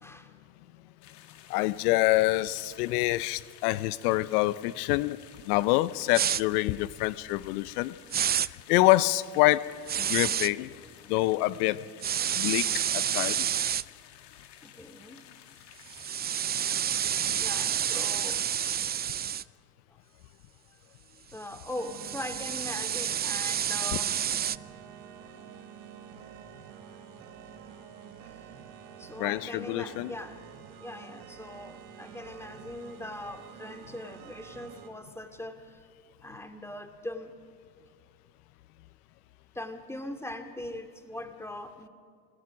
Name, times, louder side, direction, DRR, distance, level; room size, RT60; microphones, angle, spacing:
voice 1, 0.0-0.3 14.6-15.2 17.4-18.4 21.3-24.1 29.0-30.4 30.8-35.8 36.2-37.3 39.5-41.9, left 1 dB, 5° left, 6 dB, 2.4 m, -41 dB
sound 1, 1.0-19.1, left 11 dB, 60° left, 2.5 m, -53 dB
voice 2, 1.5-5.2 5.5-8.0 8.7-9.6 10.0-10.7 11.1-11.8 12.4-13.6 29.2-30.1, left 18 dB, 75° left, 17 dB, 0.7 m, -26 dB
sound 2, 6.1-6.4 8.1-8.5 9.9-10.5 12.0-13.8 15.9-19.4 21.5-24.6, right 9 dB, 20° right, 0.4 m, -29 dB
sound 3, 21.7-34.9, right 8 dB, 70° right, 2.8 m, -48 dB
27.0 x 18.5 x 6.2 m, 2.1 s
hypercardioid pair, 80°, 46 cm